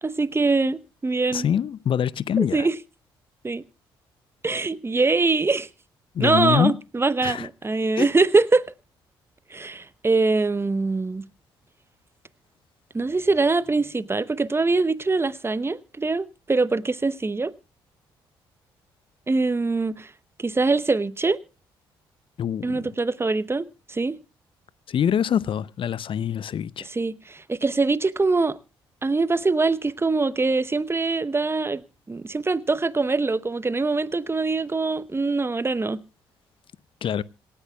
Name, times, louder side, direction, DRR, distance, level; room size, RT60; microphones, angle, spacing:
voice 1, 0.0-1.5 2.4-2.8 3.4-3.6 4.4-5.7 6.2-8.7 9.5-11.2 12.9-17.5 19.3-20.1 20.4-21.4 22.6-24.2 26.9-28.6 29.0-31.8 32.1-36.0, right 3 dB, 20° right, 0.9 m, -23 dB
voice 2, 1.3-2.7 6.1-6.7 7.2-7.5 8.0-8.1 22.4-22.9 24.9-26.9 37.0-37.2, left 9 dB, 45° left, 0.6 m, -24 dB
26.5 x 10.0 x 2.3 m
hypercardioid pair, 45°, 12 cm